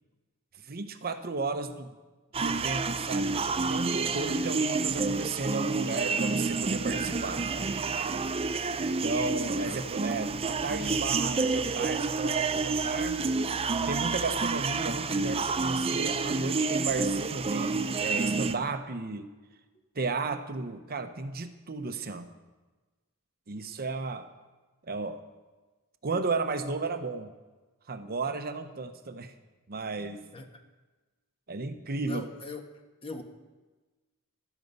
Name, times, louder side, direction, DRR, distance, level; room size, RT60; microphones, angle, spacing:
voice 1, 0.6-1.9 2.3-7.4 9.0-13.2 13.9-19.3 19.9-22.3 23.5-24.3 24.8-25.2 26.0-27.3 27.9-29.3 29.7-30.2 31.5-32.3, right 3 dB, 45° right, 8 dB, 0.9 m, -34 dB
sound 1, 2.3-18.5, right 4 dB, 25° right, 0.5 m, -29 dB
voice 2, 32.0-32.6 33.0-33.2, left 2 dB, 25° left, 5 dB, 1.2 m, -40 dB
13.0 x 13.0 x 5.4 m, 1.2 s
head